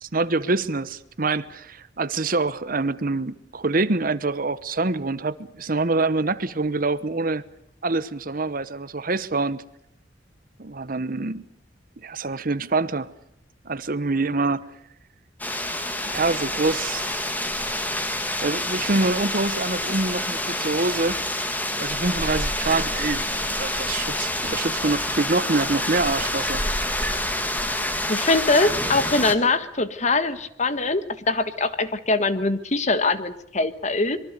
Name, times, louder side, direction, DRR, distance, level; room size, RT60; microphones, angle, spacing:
voice 1, 0.0-7.4 7.8-9.6 10.6-11.4 12.0-13.1 13.6-14.7 16.0-17.0 18.4-21.2 21.8-26.6, right 3 dB, 50° right, 1.0 m, -25 dB
sound 1, 15.4-29.3, left 1 dB, 10° left, 2.1 m, -27 dB
voice 2, 28.1-34.2, left 3 dB, 40° left, 1.5 m, -23 dB
25.0 x 23.0 x 6.7 m
head